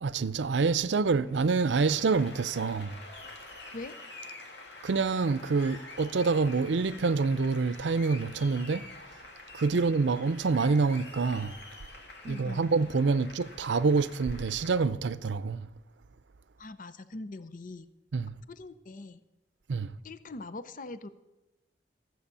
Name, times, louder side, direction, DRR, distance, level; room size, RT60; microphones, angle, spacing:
voice 1, 0.0-3.0 4.8-8.8 9.5-11.6 12.2-15.7 18.1-18.3 19.7-19.9, right 4 dB, 80° right, 0.5 m, -27 dB
Applause, 1.2-14.9, left 2 dB, 70° left, 2.2 m, -47 dB
voice 2, 12.2-12.7 16.6-17.9 18.5-19.2 20.0-21.1, left 2 dB, 50° left, 0.6 m, -42 dB
14.5 x 7.8 x 6.8 m
head